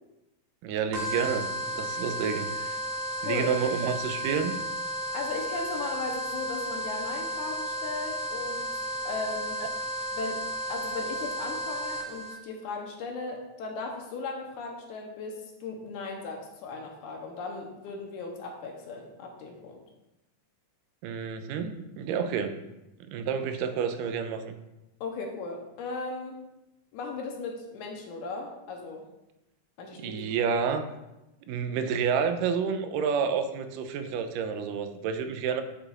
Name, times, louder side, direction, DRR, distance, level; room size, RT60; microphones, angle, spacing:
voice 1, 0.6-1.5 1.7-2.8 3.2-4.6 21.0-22.6 23.1-24.6 30.0-30.8 31.5-35.6, right 6 dB, 85° right, 8 dB, 2.2 m, -29 dB
sound 1, 0.9-12.3, right 1 dB, 65° right, 1.1 m, -33 dB
voice 2, 5.1-9.6 10.1-10.4 10.7-19.8 25.0-26.4 26.9-29.0 29.8-30.2, left 3 dB, 75° left, 2 dB, 2.1 m, -37 dB
8.9 x 6.8 x 2.4 m, 0.94 s
omnidirectional pair, 3.8 m